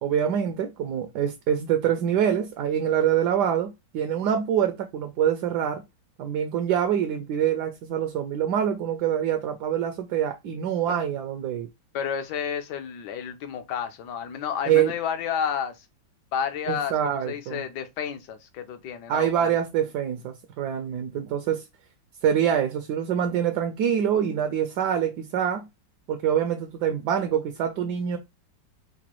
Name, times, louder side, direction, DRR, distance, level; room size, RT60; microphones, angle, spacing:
voice 1, 0.0-5.8 6.2-11.7 14.7-14.9 16.7-17.6 19.1-21.6 22.2-25.7 26.1-28.2, right 9 dB, 75° right, 1.1 m, -25 dB
voice 2, 11.9-15.8 16.3-19.5, left 8 dB, 70° left, 1.3 m, -31 dB
4.7 x 2.2 x 3.0 m
omnidirectional pair, 2.0 m